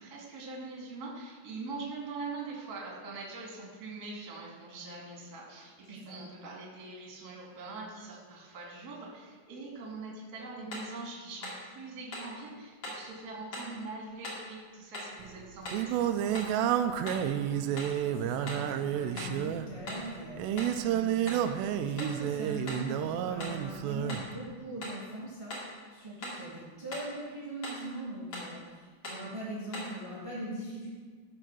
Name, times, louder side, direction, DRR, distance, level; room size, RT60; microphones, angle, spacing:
voice 1, 0.0-16.8, right 3 dB, 35° right, -3 dB, 1.8 m, -43 dB
sound 1, 10.7-10.9 11.4-11.7 12.1-12.4 12.8-13.1 13.5-13.8 14.2-14.5 14.9-15.2 15.7-15.9 16.4-16.6 17.1-17.3 17.8-18.0 18.5-18.7 19.2-19.4 19.9-20.1 20.6-20.8 21.3-21.5 22.0-22.2 22.7-22.9 23.4-23.6 24.1-24.3 24.8-25.0 25.5-25.7 26.2-26.5 26.9-27.1 27.6-27.9 28.3-28.6 29.0-29.3 29.7-30.0, left 1 dB, 45° left, 3.2 m, -41 dB
Singing, 15.2-24.3, right 10 dB, 85° right, 2.7 m, -30 dB
voice 2, 17.3-30.9, right 1 dB, 10° right, -6 dB, 1.8 m, -41 dB
14.0 x 5.0 x 6.1 m, 1.5 s
omnidirectional pair, 4.9 m